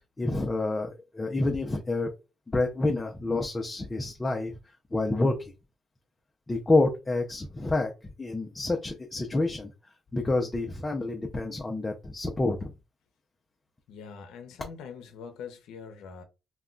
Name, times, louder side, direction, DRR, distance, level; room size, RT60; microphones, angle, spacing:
voice 1, 0.2-2.1 2.5-4.5 4.9-5.5 6.5-9.7 10.1-12.7, left 2 dB, 20° left, 0.5 m, -28 dB
voice 2, 13.9-16.2, left 6 dB, 85° left, 0.5 m, -43 dB
2.2 x 2.2 x 3.7 m
cardioid pair, 90°, 0 cm